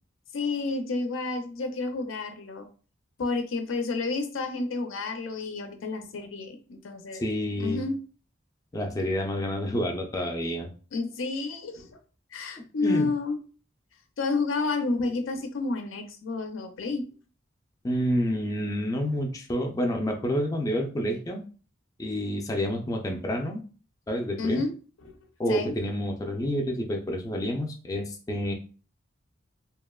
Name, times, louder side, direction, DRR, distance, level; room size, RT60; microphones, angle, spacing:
voice 1, 0.3-2.7 3.2-7.2 7.6-7.9 10.9-12.0 12.3-13.4 14.2-17.1 24.4-24.7 25.0-25.1 25.5-25.7, left 3 dB, 90° left, 6 dB, 0.5 m, -30 dB
voice 2, 7.2-7.8 8.7-10.7 12.8-13.1 17.8-21.4 22.0-23.6 24.1-24.6 25.4-28.5, equal, 15° left, 2 dB, 0.3 m, -28 dB
2.8 x 2.0 x 2.2 m, 0.37 s
head